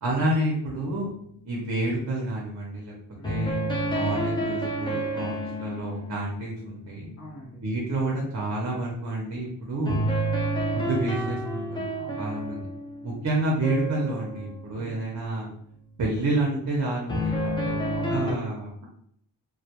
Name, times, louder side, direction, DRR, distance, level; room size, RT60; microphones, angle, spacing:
voice 1, 0.0-1.1 1.4-2.9 3.2-7.1 7.6-10.1 10.7-11.7 12.2-12.7 13.0-15.5 16.0-17.3 18.1-18.9, right 2 dB, 45° right, -2 dB, 0.6 m, -29 dB
sound 1, 0.7-1.1 3.2-7.4 9.9-15.4 17.1-18.3, right 1 dB, 15° left, 0.3 m, -30 dB
voice 2, 3.2-3.5 7.2-7.6 11.9-12.4 14.7-15.0 17.5-18.5, left 1 dB, 40° left, -4 dB, 0.7 m, -41 dB
2.2 x 2.1 x 2.8 m, 0.68 s
wide cardioid pair, 130°, 43 cm